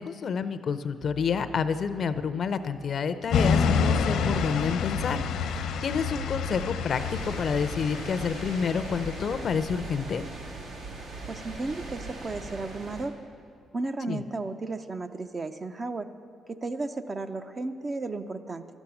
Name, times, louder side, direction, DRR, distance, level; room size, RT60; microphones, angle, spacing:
voice 1, 0.0-10.2 14.1-14.2, left 6 dB, 50° left, 12 dB, 0.6 m, -29 dB
sound 1, 1.0-2.2 2.6-12.4, right 6 dB, 60° right, 1.4 m, -50 dB
sound 2, 3.3-9.4, left 5 dB, 80° left, 0.8 m, -28 dB
sound 3, 6.9-13.0, right 2 dB, 80° right, 2.2 m, -40 dB
voice 2, 11.2-13.2 13.7-16.1 16.5-18.6, right 3 dB, 30° right, 9 dB, 0.6 m, -34 dB
12.0 x 7.2 x 9.0 m, 2.3 s
cardioid pair, 90°, 0 cm